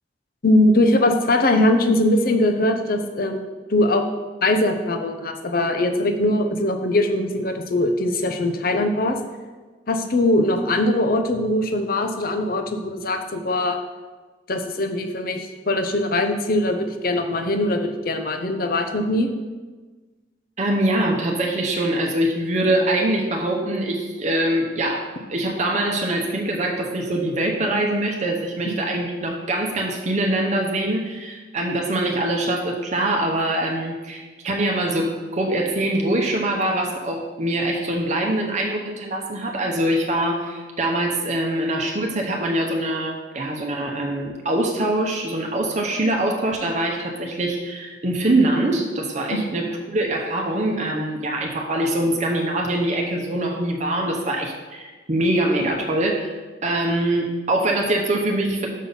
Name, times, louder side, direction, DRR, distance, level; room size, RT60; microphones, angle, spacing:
voice 1, 0.4-4.0 4.4-9.2 9.9-13.8 14.5-19.3 28.7-28.8 49.3-49.4, left 1 dB, 55° left, 6 dB, 0.7 m, -21 dB
voice 2, 20.6-58.7, right 1 dB, 40° right, 1 dB, 0.8 m, -23 dB
6.4 x 5.6 x 5.6 m, 1.3 s
head